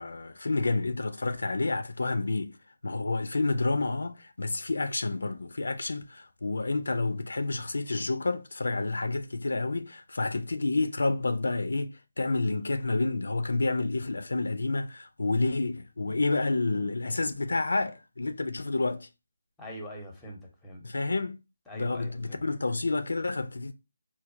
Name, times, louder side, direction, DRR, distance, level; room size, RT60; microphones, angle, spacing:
voice 1, 0.0-2.5 2.8-19.1 20.8-21.4 21.7-23.7, left 3 dB, 70° left, 0.4 m, -29 dB
voice 2, 19.6-20.8 21.7-22.4, equal, 5° left, 0.8 m, -43 dB
4.4 x 2.2 x 2.5 m
figure-of-eight pair, 155°, 0 cm